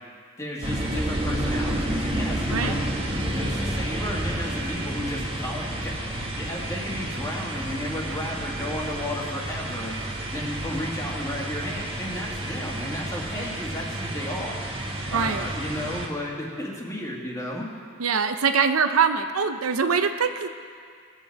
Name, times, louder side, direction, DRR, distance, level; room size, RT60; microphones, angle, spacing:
voice 1, 0.4-2.9 3.3-10.0 10.3-14.7 15.1-17.7, left 1 dB, 15° left, -3 dB, 2.0 m, -33 dB
sound 1, 0.6-16.1, right 1 dB, 25° right, 1.3 m, -30 dB
voice 2, 15.1-15.5 18.0-20.5, right 6 dB, 90° right, 8 dB, 0.7 m, -23 dB
19.5 x 7.8 x 4.7 m, 2.1 s
head